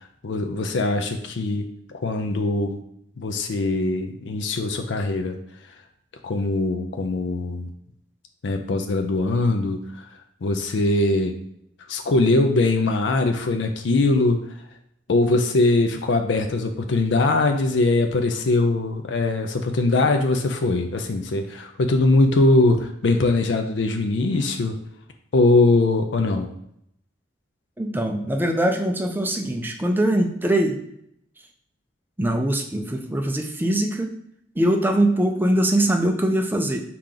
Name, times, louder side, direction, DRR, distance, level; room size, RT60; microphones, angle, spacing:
voice 1, 0.2-2.8 3.2-5.4 6.2-7.7 8.4-10.0 10.4-11.3 11.9-14.4 15.1-24.8 25.3-26.5, left 2 dB, 65° left, 5 dB, 0.5 m, -21 dB
voice 2, 27.8-30.8 32.2-34.1 34.6-36.8, right 1 dB, 10° right, 3 dB, 0.5 m, -22 dB
4.9 x 2.9 x 3.7 m, 0.73 s
head